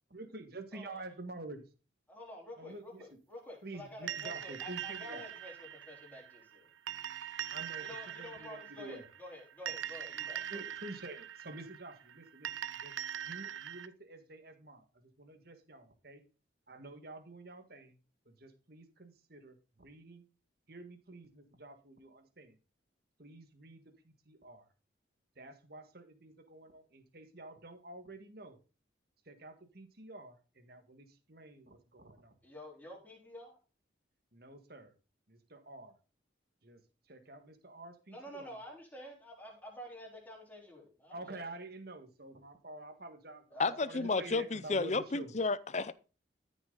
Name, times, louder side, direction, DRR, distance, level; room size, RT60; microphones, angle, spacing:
voice 1, 0.1-1.6 2.6-3.0 3.6-5.2 7.5-7.9 8.2-9.0 10.5-12.5 12.8-12.9 13.3-14.8 15.2-16.2 16.7-18.0 18.2-20.2 20.7-22.5 23.2-24.6 25.4-28.6 29.3-32.3 34.3-34.9 35.3-35.9 36.6-36.8 37.1-38.6 41.1-45.3, right 2 dB, 50° right, 1.7 m, -49 dB
voice 2, 0.7-1.0 2.1-6.7 7.8-10.6 32.4-33.6 38.1-41.4 43.5-44.2, left 1 dB, 10° left, 3.7 m, -49 dB
sound 1, 4.1-13.9, right 10 dB, 85° right, 0.6 m, -42 dB
voice 3, 43.6-45.9, left 3 dB, 35° left, 0.6 m, -32 dB
13.5 x 6.1 x 3.9 m
head